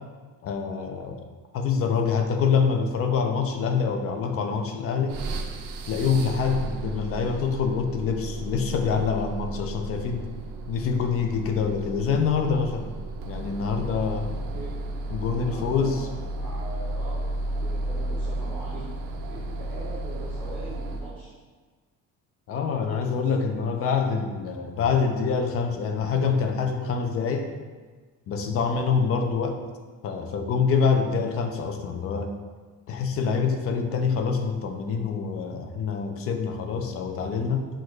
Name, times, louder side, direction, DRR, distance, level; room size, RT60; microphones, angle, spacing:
voice 1, 0.4-1.3 1.5-5.2 5.9-10.3 10.7-12.9 13.3-14.3 15.1-16.1 22.5-27.5 28.3-29.6 30.0-32.4 32.9-37.7, left 5 dB, 45° left, 5 dB, 0.4 m, -26 dB
sound 1, 5.1-21.2, right 2 dB, 90° right, 0.5 m, -33 dB
voice 2, 14.4-14.8 15.4-16.1 16.3-18.9 19.3-21.3 23.0-23.3 23.5-24.1, right 1 dB, 5° left, -11 dB, 0.8 m, -42 dB
6.1 x 2.4 x 3.1 m, 1.4 s
cardioid pair, 170°, 33 cm